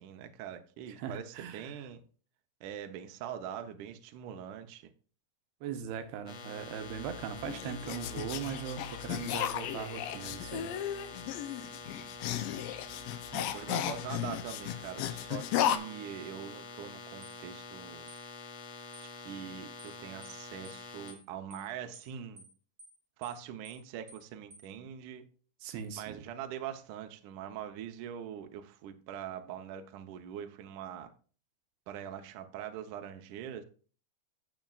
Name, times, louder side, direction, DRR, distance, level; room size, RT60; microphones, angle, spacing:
voice 1, 0.0-2.0 2.6-4.9 13.3-18.1 19.0-22.4 23.2-25.2 26.0-31.1 31.9-33.6, right 9 dB, 70° right, 2.1 m, -43 dB
voice 2, 1.0-1.8 5.6-10.8 25.6-26.2, right 7 dB, 85° right, 2.9 m, -40 dB
sound 1, 6.3-21.1, left 4 dB, 55° left, 2.0 m, -47 dB
sound 2, 7.0-15.8, left 11 dB, 75° left, 2.2 m, -35 dB
sound 3, 17.2-17.4 18.1-18.2 18.9-19.1 19.8-20.0 20.2-20.4 20.6-20.8 21.1-21.2 21.5-21.7 21.9-22.1 22.4-22.5 22.8-23.0 23.2-23.4 23.6-23.8 24.1-24.2 24.5-24.7, equal, 30° right, 1.7 m, -54 dB
16.5 x 6.0 x 2.5 m
omnidirectional pair, 4.6 m